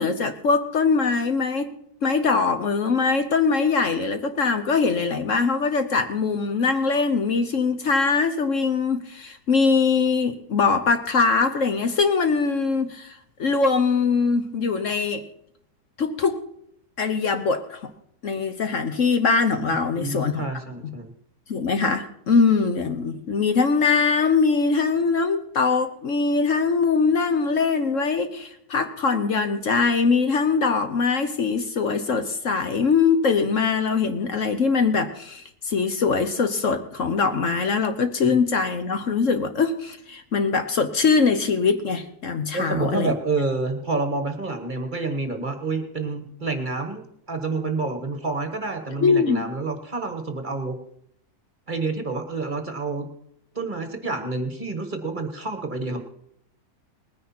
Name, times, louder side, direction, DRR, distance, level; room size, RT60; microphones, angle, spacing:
voice 1, 0.0-1.7 2.0-15.2 16.0-16.4 17.0-17.9 18.2-20.4 20.8-20.9 21.5-43.1 49.0-49.4, left 4 dB, 55° left, 1.3 m, -22 dB
voice 2, 19.9-21.1 38.3-38.4 42.5-50.8 51.7-53.1 53.5-56.0, right 3 dB, 30° right, 1.5 m, -28 dB
20.0 x 9.9 x 4.3 m
omnidirectional pair, 1.6 m